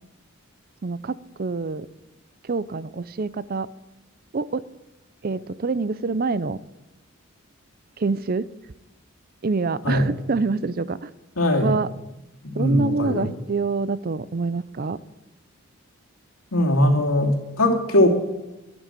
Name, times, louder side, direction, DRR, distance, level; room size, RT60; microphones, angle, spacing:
voice 1, 0.8-1.9 2.4-3.7 4.3-4.6 5.2-6.6 8.0-8.5 9.4-11.1 11.6-11.9 12.5-15.0, right 4 dB, 45° right, 17 dB, 0.5 m, -26 dB
voice 2, 11.4-11.8 12.4-13.3 16.5-18.1, left 1 dB, 85° left, 2 dB, 2.7 m, -20 dB
12.0 x 11.0 x 9.0 m, 1.0 s
head